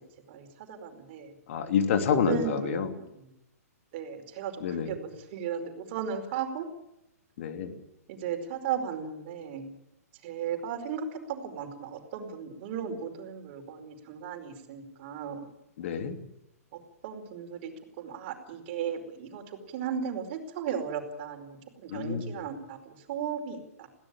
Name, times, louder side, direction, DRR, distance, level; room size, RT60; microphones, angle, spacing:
voice 1, 0.3-1.3 2.1-3.3 3.9-6.7 8.1-9.7 10.2-15.5 16.7-17.7 18.0-19.4 19.7-23.9, right 7 dB, 45° right, 6 dB, 4.8 m, -36 dB
voice 2, 1.5-2.9 4.6-5.0 7.4-7.8 15.8-16.2 21.9-22.4, left 7 dB, 50° left, 7 dB, 3.0 m, -28 dB
21.5 x 17.0 x 9.0 m, 0.84 s
figure-of-eight pair, 120°, 9 cm